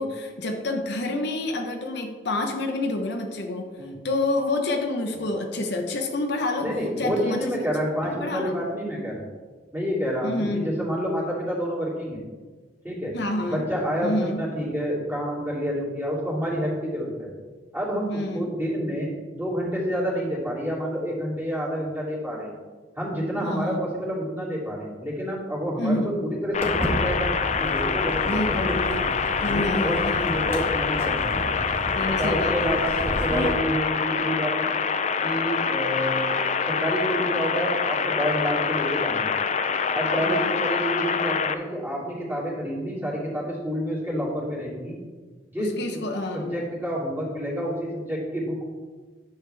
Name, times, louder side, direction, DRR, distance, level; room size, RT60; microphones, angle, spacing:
voice 1, 0.0-3.7 4.0-6.7 7.0-7.5 8.1-8.6 10.2-10.7 13.1-13.7 14.0-14.4 18.1-18.6 23.4-23.9 25.8-26.2 28.3-29.0 29.4-30.5 31.9-32.8 40.2-40.6 45.6-46.6, left 2 dB, 65° left, 3 dB, 0.9 m, -28 dB
voice 2, 6.6-9.2 9.7-12.2 12.8-13.1 13.5-17.3 17.7-22.6 23.0-27.3 27.6-29.0 29.4-31.5 32.2-34.5 35.2-36.2 36.6-39.3 39.9-44.9 45.5-46.1 46.3-48.7, equal, 10° right, -7 dB, 2.9 m, -28 dB
sound 1, 26.5-41.5, left 6 dB, 40° left, 0.5 m, -25 dB
Walk footsteps, 26.6-33.5, equal, 15° left, 1.8 m, -32 dB
10.5 x 7.2 x 3.4 m, 1.4 s
head